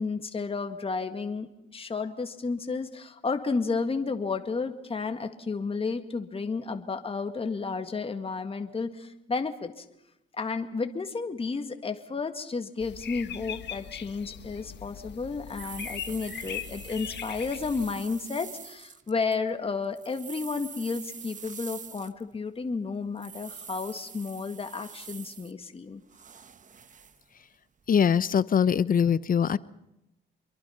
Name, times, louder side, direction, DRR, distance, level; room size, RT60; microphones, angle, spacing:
voice 1, 0.0-9.8 10.3-26.0, left 4 dB, 30° left, 7 dB, 1.9 m, -32 dB
sound 1, 12.8-18.0, left 9 dB, 60° left, 1.4 m, -40 dB
sound 2, 15.0-15.1 15.5-19.4 19.8-22.4 23.2-25.5 26.1-27.2 27.8-27.9, right 6 dB, 40° right, 1.1 m, -45 dB
voice 2, 27.9-29.6, left 7 dB, 45° left, 18 dB, 0.9 m, -22 dB
26.5 x 22.5 x 5.8 m, 0.88 s
cardioid pair, 90°, 20 cm